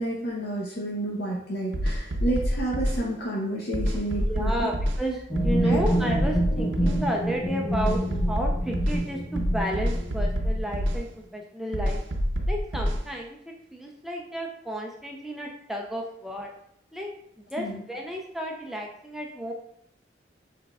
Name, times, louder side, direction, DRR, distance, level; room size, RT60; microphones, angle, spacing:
voice 1, 0.0-4.5 5.7-5.8 17.6-17.8, right 1 dB, 60° left, -4 dB, 0.8 m, -30 dB
sound 1, 1.7-3.0 3.7-5.0 5.4-7.0 7.7-9.0 9.4-11.0 11.7-13.0, equal, 80° right, 0.6 m, -26 dB
voice 2, 4.1-8.0 8.3-12.0 12.5-16.5 16.9-17.1 17.4-19.5, equal, ahead, 0 dB, 0.4 m, -32 dB
sound 2, 5.3-10.9, right 1 dB, 25° left, 0.8 m, -28 dB
6.1 x 3.6 x 2.3 m, 0.71 s
head